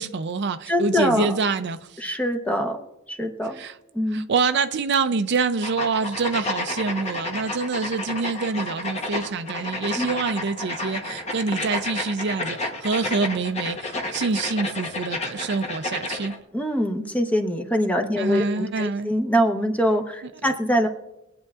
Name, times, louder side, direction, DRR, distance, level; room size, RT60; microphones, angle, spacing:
voice 1, 0.0-1.8 3.5-3.7 4.1-16.3 18.2-19.1 20.4-20.5, right 4 dB, 55° right, 0.5 m, -26 dB
voice 2, 0.7-1.4 2.0-3.6 3.9-4.3 10.0-10.1 16.5-20.9, equal, 5° left, 0.9 m, -24 dB
sound 1, 5.6-16.4, left 2 dB, 30° left, 1.0 m, -31 dB
23.0 x 8.6 x 2.4 m
head